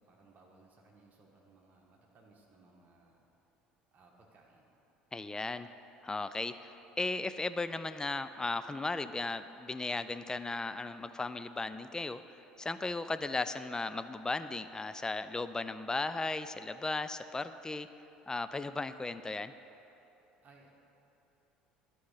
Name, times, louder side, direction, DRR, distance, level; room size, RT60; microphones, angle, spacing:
voice 1, 0.0-3.3 3.9-4.8 20.4-20.7, right 3 dB, 40° right, -1 dB, 1.4 m, -62 dB
voice 2, 5.1-5.7 6.0-17.9 18.3-19.5, left 3 dB, 15° left, 12 dB, 0.3 m, -36 dB
11.0 x 3.8 x 5.6 m, 3.0 s
hypercardioid pair, 65°, 5 cm